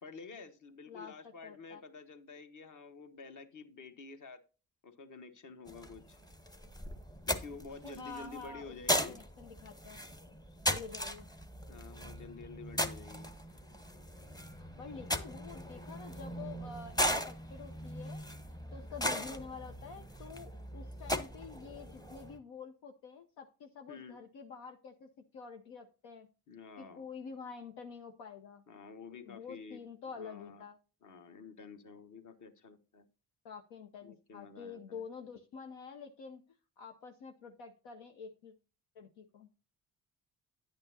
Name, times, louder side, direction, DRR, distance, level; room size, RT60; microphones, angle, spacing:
voice 1, 0.0-4.4 4.8-6.2 7.3-9.2 11.7-13.3 23.9-24.2 26.5-27.1 28.7-29.8 30.1-30.7 31.0-33.1 34.0-35.0, left 4 dB, 40° left, 8 dB, 1.3 m, -50 dB
voice 2, 1.4-1.8 8.0-10.0 10.6-11.3 14.6-18.2 18.7-26.3 26.8-28.6 29.2-30.8 33.4-36.4 36.8-38.5 38.9-39.5, left 5 dB, 65° left, 4 dB, 0.8 m, -48 dB
sound 1, 5.7-22.4, equal, 10° left, 0.9 m, -38 dB
10.0 x 8.9 x 2.7 m, 0.34 s
hypercardioid pair, 40°, 48 cm